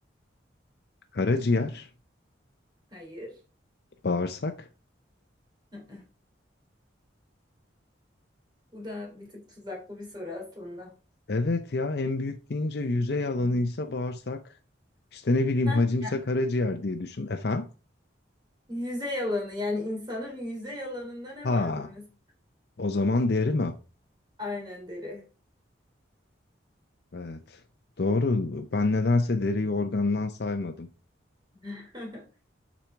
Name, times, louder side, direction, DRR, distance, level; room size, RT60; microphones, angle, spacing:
voice 1, 1.1-1.9 4.0-4.7 11.3-14.4 15.1-17.7 21.4-21.9 22.8-23.7 27.1-27.6 28.0-30.9, left 2 dB, 55° left, 0.6 m, -27 dB
voice 2, 2.9-3.4 5.7-6.0 8.7-10.9 15.6-16.2 18.7-22.0 24.4-25.2 31.6-32.2, left 2 dB, 20° right, 3.0 m, -36 dB
7.5 x 5.2 x 4.5 m
head